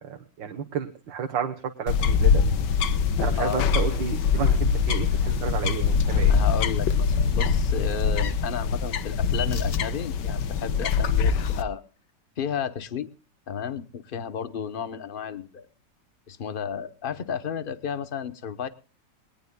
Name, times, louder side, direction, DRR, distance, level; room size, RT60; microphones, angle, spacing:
voice 1, 0.0-2.5 2.8-2.9 3.2-6.3, right 7 dB, 85° right, 4 dB, 1.9 m, -31 dB
sound 1, 1.9-11.6, left 6 dB, 75° left, 1.6 m, -23 dB
voice 2, 3.4-3.7 6.3-11.8 12.4-13.1 13.5-15.7 16.3-18.7, left 7 dB, 40° left, 13 dB, 0.9 m, -33 dB
22.0 x 19.0 x 2.3 m, 0.33 s
omnidirectional pair, 1.9 m